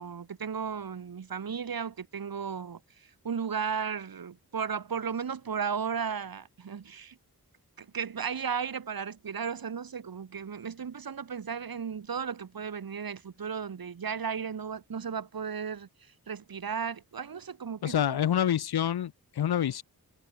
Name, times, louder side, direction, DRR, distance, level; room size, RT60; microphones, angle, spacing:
voice 1, 0.0-7.2 7.8-18.2, right 6 dB, 70° right, 2.7 m, -35 dB
voice 2, 17.8-19.8, left 10 dB, 85° left, 0.9 m, -27 dB
wide cardioid pair, 85°, 37 cm